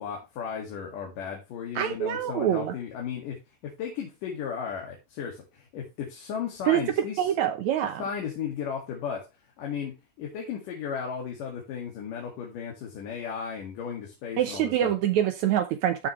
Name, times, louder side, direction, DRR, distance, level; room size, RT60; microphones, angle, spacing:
voice 1, 0.0-7.3 8.0-9.3 9.6-14.9, left 7 dB, 85° left, 3.6 m, -35 dB
voice 2, 1.8-2.7 6.7-6.8 7.2-8.0 14.4-16.1, right 10 dB, 70° right, 2.0 m, -25 dB
13.0 x 6.3 x 3.1 m
omnidirectional pair, 3.7 m